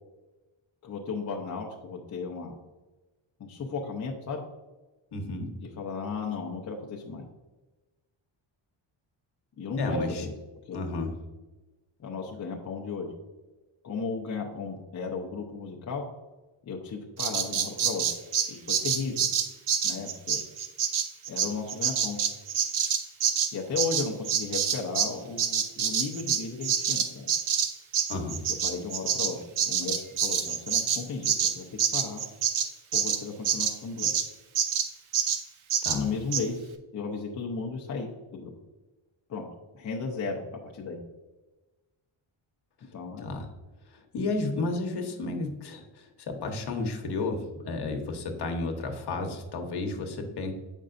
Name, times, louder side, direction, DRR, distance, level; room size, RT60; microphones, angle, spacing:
voice 1, 0.8-2.5 3.4-4.4 5.6-7.3 9.6-10.3 10.7-10.8 12.0-13.1 13.8-16.0 16.6-18.0 18.5-19.3 19.8-20.4 21.3-22.2 23.5-27.3 28.6-29.4 29.6-31.7 31.9-32.2 32.9-34.1 35.9-38.5 39.3-39.4 39.7-40.4 40.7-41.0 42.9-43.3, left 4 dB, 35° left, -1 dB, 0.7 m, -35 dB
voice 2, 5.1-5.5 9.8-10.2 10.7-11.1 28.1-28.4 35.8-36.1 43.2-43.5 43.9-50.5, left 3 dB, 55° left, 3 dB, 1.1 m, -32 dB
Bird vocalization bird call bird song, 17.2-25.1 25.4-34.3 34.6-34.9 35.1-35.4 35.7-36.0 36.3-36.4, right 8 dB, 75° right, 0.8 m, -27 dB
7.7 x 5.4 x 2.5 m, 1.2 s
wide cardioid pair, 165°, 48 cm